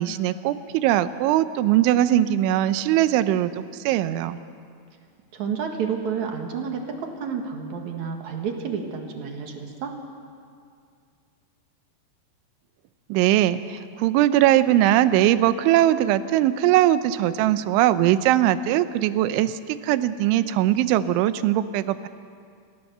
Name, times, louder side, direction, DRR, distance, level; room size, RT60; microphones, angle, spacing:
voice 1, 0.0-3.5 3.9-4.4 13.1-22.1, right 13 dB, 85° right, 13 dB, 3.1 m, -20 dB
voice 2, 5.3-9.9, right 6 dB, 60° right, 3 dB, 2.0 m, -30 dB
28.0 x 17.0 x 6.7 m, 2.3 s
omnidirectional pair, 5.4 m